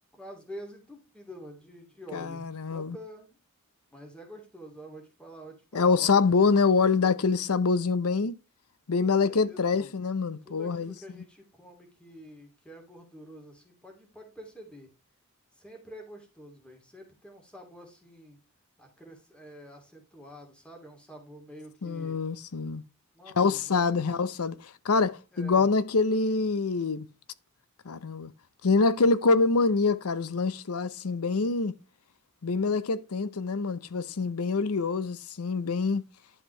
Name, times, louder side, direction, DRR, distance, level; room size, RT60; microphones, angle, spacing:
voice 1, 0.1-3.4 3.9-6.1 9.0-10.0 10.4-14.9 15.6-18.4 18.8-22.2 23.1-23.9 25.3-25.7, equal, 5° left, 2.5 m, -47 dB
voice 2, 2.1-3.0 5.7-8.3 8.9-10.9 21.8-22.8 23.4-27.1 27.8-28.3 28.6-31.7 32.4-36.0, left 4 dB, 75° left, 0.7 m, -25 dB
11.0 x 5.8 x 3.2 m
head